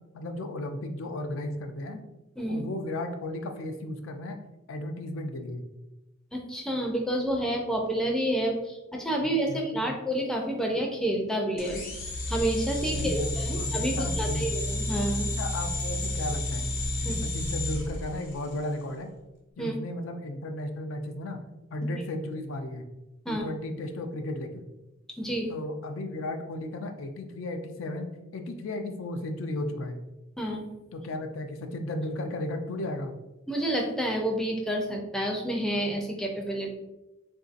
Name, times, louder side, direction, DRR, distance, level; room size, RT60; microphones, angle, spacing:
voice 1, 0.1-2.0 2.5-4.4 4.7-5.6 9.5-9.9 12.9-14.5 15.4-16.7 17.0-19.1 19.6-21.4 21.7-22.8 23.3-24.7 25.5-30.1 30.9-33.2, left 1 dB, 80° left, 6 dB, 0.4 m, -35 dB
voice 2, 6.3-11.8 12.3-15.3 17.0-17.2 19.6-19.7 23.3-23.5 25.2-25.5 30.4-30.7 33.5-36.7, right 1 dB, 5° left, 0 dB, 0.4 m, -29 dB
sound 1, 11.6-18.7, left 1 dB, 45° left, 0.7 m, -31 dB
3.7 x 2.6 x 2.4 m, 0.99 s
head